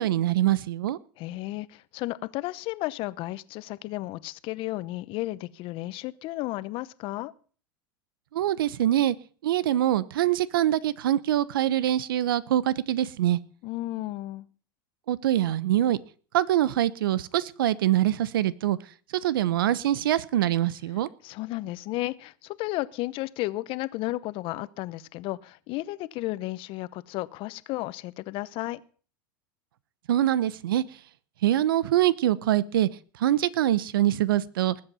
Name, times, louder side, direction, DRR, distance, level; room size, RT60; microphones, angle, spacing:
voice 1, 0.0-1.0 8.3-9.1 9.4-13.4 15.1-16.0 16.3-18.8 19.2-21.1 30.1-30.8 31.4-32.9 33.2-34.7, right 12 dB, 80° right, 0.8 m, -24 dB
voice 2, 1.2-7.3 13.6-14.5 21.2-28.8, left 18 dB, 50° left, 0.8 m, -33 dB
20.0 x 7.8 x 5.6 m
hypercardioid pair, 105°, 11 cm